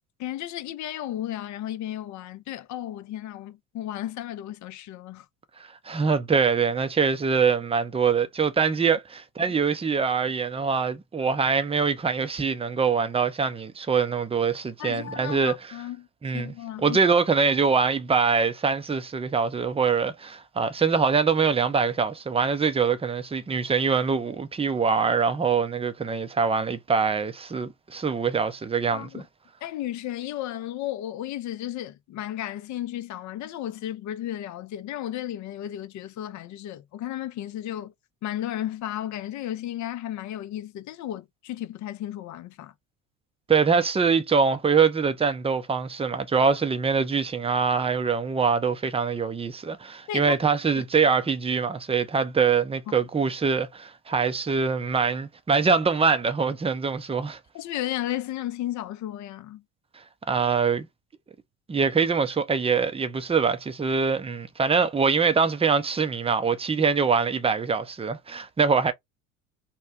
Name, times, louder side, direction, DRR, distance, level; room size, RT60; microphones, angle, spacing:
voice 1, 0.2-5.3 14.8-16.1 16.3-17.0 28.9-29.3 29.6-37.9 38.2-42.7 50.1-50.4 50.7-50.8 57.5-59.6, left 12 dB, 45° left, 0.7 m, -34 dB
voice 2, 5.8-15.6 16.2-29.2 43.5-57.4 60.3-60.9 61.7-68.9, right 5 dB, 15° right, 0.7 m, -24 dB
2.9 x 2.1 x 3.5 m
hypercardioid pair, 65°, 43 cm